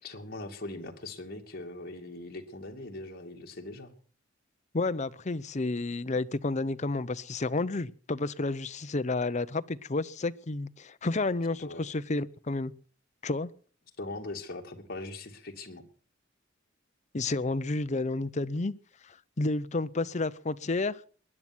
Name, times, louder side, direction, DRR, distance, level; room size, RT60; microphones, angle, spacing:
voice 1, 0.0-3.9 11.6-11.8 14.0-15.9, left 2 dB, 55° left, 2 dB, 2.6 m, -41 dB
voice 2, 4.7-12.7 13.2-13.5 17.1-18.7 19.4-21.0, left 2 dB, 40° left, 13 dB, 0.7 m, -30 dB
20.0 x 11.0 x 6.2 m, 0.43 s
head